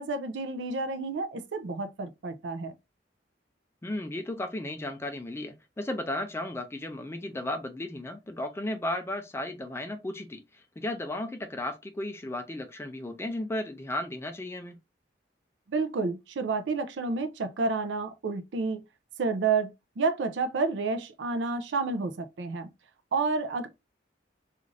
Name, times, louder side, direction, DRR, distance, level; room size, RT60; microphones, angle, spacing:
voice 1, 0.0-2.7 15.7-18.8 19.2-19.7 20.0-22.7 23.1-23.7, right 4 dB, 80° right, 0.5 m, -30 dB
voice 2, 3.8-14.8, left 1 dB, 15° left, 0.3 m, -34 dB
2.5 x 2.5 x 3.1 m
head